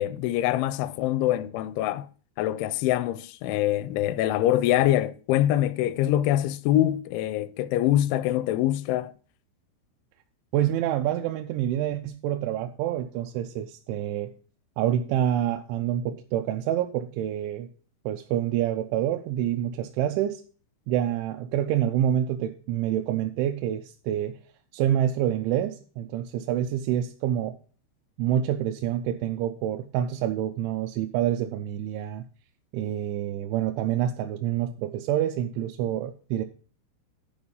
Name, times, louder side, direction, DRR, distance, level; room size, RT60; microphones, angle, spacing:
voice 1, 0.0-2.1 2.4-9.1, left 13 dB, 85° left, 2.9 m, -24 dB
voice 2, 10.5-14.3 14.8-17.7 18.1-20.4 20.9-24.4 24.7-27.6 28.2-32.2 32.7-36.5, right 11 dB, 85° right, 3.0 m, -27 dB
11.5 x 4.8 x 5.5 m
omnidirectional pair, 5.3 m